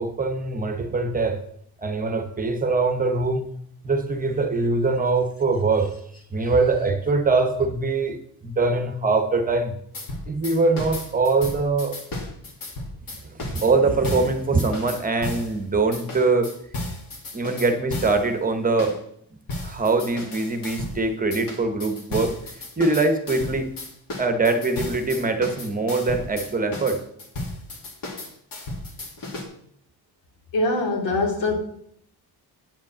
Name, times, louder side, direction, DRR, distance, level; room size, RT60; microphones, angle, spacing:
voice 1, 0.0-1.4 1.8-3.5 3.8-5.9 6.3-8.2 8.4-9.7 10.3-12.0 13.4-16.5 17.3-18.9 19.6-22.3 22.8-23.7 24.2-27.0, right 3 dB, 20° right, 7 dB, 0.9 m, -22 dB
sound 1, 9.9-15.5 15.9-18.3 18.8-19.0 19.5-21.0 21.3-29.4, left 2 dB, 55° left, 2.2 m, -34 dB
voice 2, 30.5-31.5, left 2 dB, 85° left, 1 dB, 2.8 m, -23 dB
9.2 x 5.3 x 7.2 m, 0.68 s
cardioid pair, 175°, 40 cm